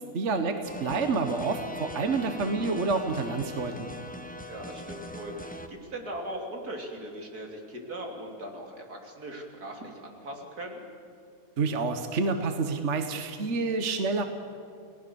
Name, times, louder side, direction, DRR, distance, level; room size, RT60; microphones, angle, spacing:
voice 1, 0.1-3.9 11.6-14.2, right 4 dB, 50° right, 7 dB, 1.5 m, -28 dB
sound 1, 0.6-5.7, left 1 dB, 5° left, 1.0 m, -41 dB
voice 2, 4.5-10.9, right 1 dB, 80° right, 1 dB, 3.6 m, -39 dB
30.0 x 19.0 x 7.0 m, 2.5 s
omnidirectional pair, 1.6 m